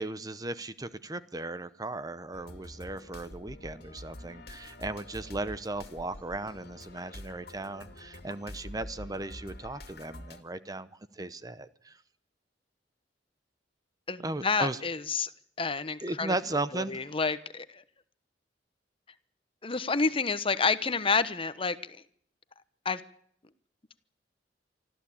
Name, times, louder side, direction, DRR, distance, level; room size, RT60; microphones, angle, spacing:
voice 1, 0.0-10.9 11.1-12.0 14.2-14.8 16.0-17.0, right 2 dB, 20° right, 0.8 m, -36 dB
sound 1, 2.3-10.4, left 1 dB, 60° left, 2.3 m, -46 dB
voice 2, 14.1-15.3 15.6-16.3 16.7-17.8 19.6-22.0 22.8-23.0, left 4 dB, 30° left, 1.1 m, -29 dB
25.0 x 14.0 x 8.6 m
head